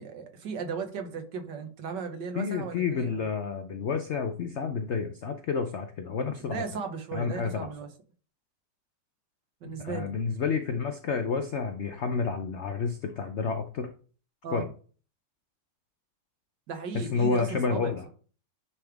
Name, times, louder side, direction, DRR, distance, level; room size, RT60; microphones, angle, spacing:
voice 1, 0.0-3.2 6.4-7.9 9.6-10.2 14.4-14.7 16.7-18.1, right 5 dB, 75° right, 5 dB, 1.8 m, -36 dB
voice 2, 2.4-6.6 7.1-7.7 9.7-13.9 14.5-14.7 16.9-18.0, left 5 dB, 70° left, 6 dB, 0.6 m, -30 dB
9.6 x 3.5 x 3.5 m, 0.40 s
omnidirectional pair, 1.9 m